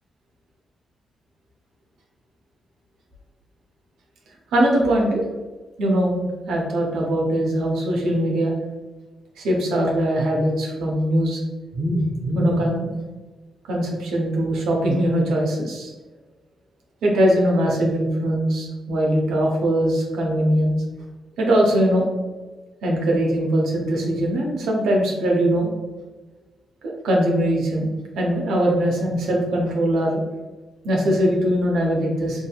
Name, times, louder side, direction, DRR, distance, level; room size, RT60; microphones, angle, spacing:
voice 1, 4.5-5.2 5.8-6.2 6.5-8.5 9.4-11.4 11.7-12.9 13.7-15.9 17.0-20.8 21.4-22.1 22.8-25.7 26.8-30.2 30.8-32.5, right 1 dB, 80° right, -1 dB, 0.6 m, -21 dB
2.7 x 2.6 x 2.3 m, 1.3 s
hypercardioid pair, 45°, 0 cm